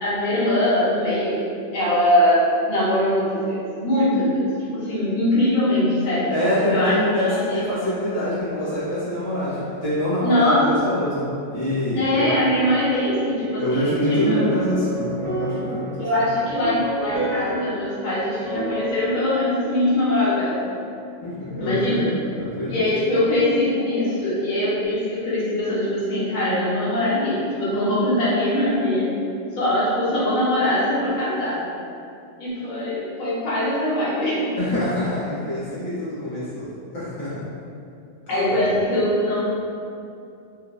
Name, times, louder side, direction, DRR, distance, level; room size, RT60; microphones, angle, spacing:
voice 1, 0.0-1.4 1.7-4.4 4.7-6.3 6.7-7.6 10.2-10.8 11.9-14.5 16.0-20.6 21.6-22.1 22.7-29.2 29.5-31.6 32.4-34.5 38.3-39.4, left 1 dB, 45° left, -10 dB, 0.8 m, -22 dB
voice 2, 6.3-12.3 13.6-16.1 21.2-22.0 22.3-22.9 34.6-36.7 36.9-37.5 38.3-38.4, left 1 dB, 85° left, -12 dB, 1.6 m, -25 dB
sound 1, 10.5-13.6 14.4-20.0, right 2 dB, 60° right, 0.9 m, -33 dB
3.8 x 2.0 x 2.4 m, 2.5 s
omnidirectional pair, 1.4 m